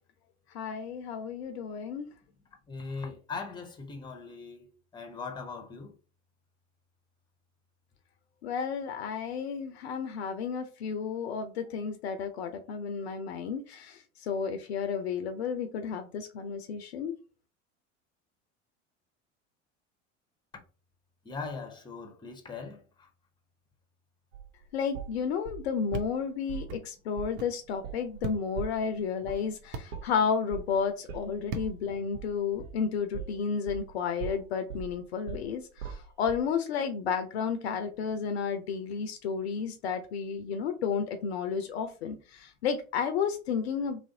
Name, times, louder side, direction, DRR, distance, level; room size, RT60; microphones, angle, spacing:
voice 1, 0.5-2.1 8.4-17.2 24.7-44.0, left 6 dB, 60° left, 0.6 m, -32 dB
voice 2, 2.7-5.9 21.2-23.1, left 4 dB, 10° left, 0.8 m, -40 dB
sound 1, 24.3-26.1 26.5-26.8 27.2-27.4 27.7-33.9 34.2-36.5, right 7 dB, 70° right, 0.9 m, -41 dB
sound 2, 25.9-26.1 26.7-26.8 27.3-27.5 28.2-28.4 29.7-29.9 31.5-31.7, right 4 dB, 40° right, 0.5 m, -36 dB
3.0 x 2.5 x 2.7 m
figure-of-eight pair, 75°, 37 cm